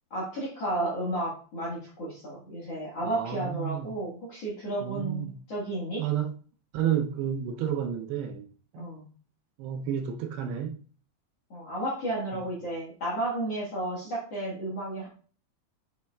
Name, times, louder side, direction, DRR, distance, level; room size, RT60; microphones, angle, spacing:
voice 1, 0.1-6.0 8.8-9.1 11.5-15.1, right 1 dB, 55° left, 1.8 m, -32 dB
voice 2, 3.0-3.9 4.8-5.4 6.0-6.3 6.7-8.5 8.7-8.9 9.6-10.8, right 9 dB, 80° right, 2.7 m, -31 dB
8.0 x 5.6 x 2.3 m
omnidirectional pair, 5.0 m